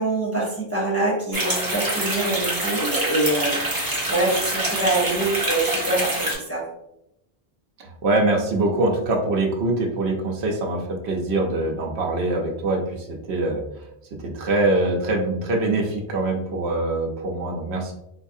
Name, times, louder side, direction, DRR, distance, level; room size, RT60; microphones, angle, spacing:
voice 1, 0.0-3.6 4.1-6.7, right 2 dB, 15° left, -5 dB, 0.7 m, -24 dB
sound 1, 1.3-6.3, right 1 dB, 25° right, 0.7 m, -26 dB
voice 2, 7.8-13.6 14.2-17.9, right 2 dB, 90° right, 1 dB, 0.9 m, -23 dB
3.9 x 2.4 x 2.6 m, 0.82 s
omnidirectional pair, 1.1 m